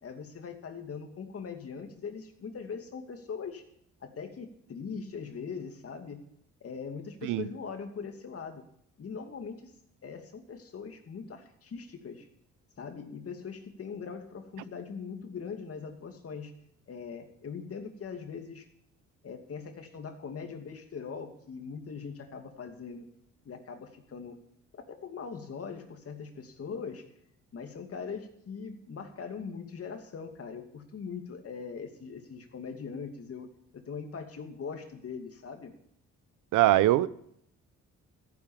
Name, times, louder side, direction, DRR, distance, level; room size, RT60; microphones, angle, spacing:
voice 1, 0.0-3.6 4.0-6.2 6.6-8.6 9.0-9.7 10.0-12.3 12.8-16.5 16.9-18.7 19.2-23.1 23.4-24.4 24.9-27.1 27.5-35.7, left 5 dB, 50° left, 2.6 m, -41 dB
voice 2, 36.5-37.1, right 15 dB, 85° right, 0.7 m, -22 dB
14.5 x 10.0 x 7.4 m
cardioid pair, 90°, 30 cm